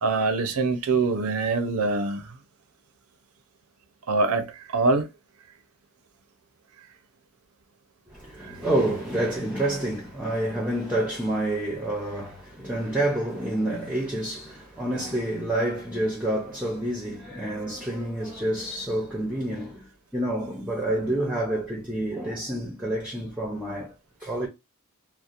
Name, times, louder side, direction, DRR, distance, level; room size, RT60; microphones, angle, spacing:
voice 1, 0.0-2.2 4.1-5.1, right 3 dB, 80° right, 0.5 m, -24 dB
voice 2, 8.1-23.9 24.2-24.5, right 1 dB, 5° right, 0.6 m, -28 dB
2.8 x 2.0 x 2.4 m
head